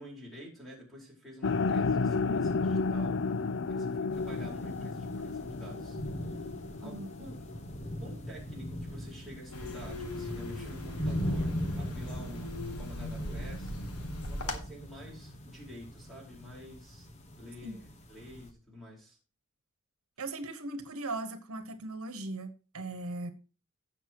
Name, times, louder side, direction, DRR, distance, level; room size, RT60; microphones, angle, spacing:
voice 1, 0.0-6.4 6.8-7.4 7.8-13.8 14.2-17.1 17.4-19.2, equal, ahead, -3 dB, 4.7 m, -49 dB
sound 1, 1.4-7.6, left 4 dB, 55° left, 0.5 m, -32 dB
sound 2, 4.1-18.5, equal, 30° left, 1.3 m, -40 dB
sound 3, 9.5-14.6, left 2 dB, 85° left, 1.8 m, -39 dB
voice 2, 20.2-23.3, right 2 dB, 75° right, 9 dB, 1.3 m, -38 dB
16.5 x 6.9 x 3.0 m, 0.34 s
head